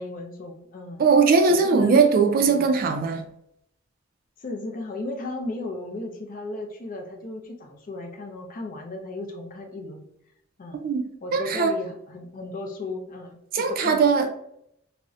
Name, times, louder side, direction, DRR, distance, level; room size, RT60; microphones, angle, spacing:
voice 1, 0.0-1.1 1.5-2.6 4.4-10.1 10.6-10.9 11.2-14.0, left 2 dB, 45° left, 2 dB, 0.4 m, -35 dB
voice 2, 1.0-3.3 10.7-11.1 11.3-11.7 13.5-14.3, right 5 dB, 45° right, 5 dB, 0.3 m, -20 dB
2.5 x 2.0 x 2.4 m, 0.75 s
head